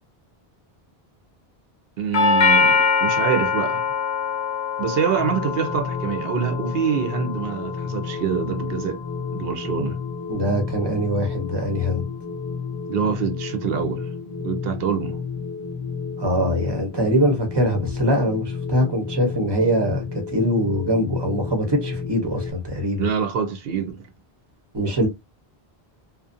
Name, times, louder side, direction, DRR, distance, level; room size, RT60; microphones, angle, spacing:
voice 1, 2.0-3.9 4.8-9.0 9.3-10.0 12.9-14.1 14.4-15.2 23.0-24.1, right 7 dB, 70° right, 0.8 m, -25 dB
Doorbell, 2.1-10.2, left 5 dB, 75° left, 0.8 m, -24 dB
sound 1, 5.2-22.5, left 5 dB, 40° left, 0.4 m, -31 dB
voice 2, 10.3-12.1 16.2-23.1 24.7-25.1, equal, 25° right, 0.7 m, -23 dB
2.5 x 2.1 x 2.5 m
omnidirectional pair, 1.1 m